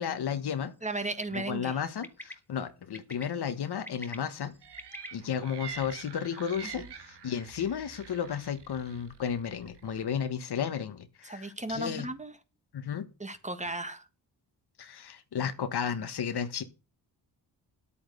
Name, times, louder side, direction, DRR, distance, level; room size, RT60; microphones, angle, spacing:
voice 1, 0.0-0.7 1.3-4.5 5.1-12.1 12.7-13.1 14.8-16.6, left 8 dB, 75° left, 1.5 m, -33 dB
voice 2, 0.8-1.8 6.8-6.9 11.2-12.3 13.2-14.0, right 2 dB, 20° right, 1.7 m, -35 dB
Bird, 1.0-1.4 2.0-2.3 2.9-3.2 3.7-5.1, left 1 dB, 5° left, 1.5 m, -44 dB
sound 1, 4.6-10.0, right 7 dB, 85° right, 2.0 m, -46 dB
10.0 x 8.7 x 6.8 m
cardioid pair, 75°, 40 cm